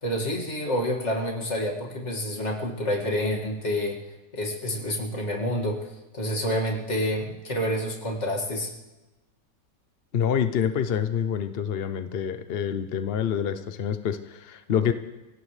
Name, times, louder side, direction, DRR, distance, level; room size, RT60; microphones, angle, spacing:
voice 1, 0.0-4.0 4.3-5.9 6.1-8.7, equal, 40° left, -1 dB, 2.5 m, -28 dB
voice 2, 10.1-14.9, left 8 dB, 65° left, 9 dB, 0.6 m, -27 dB
24.5 x 17.0 x 3.3 m, 1.1 s
omnidirectional pair, 1.9 m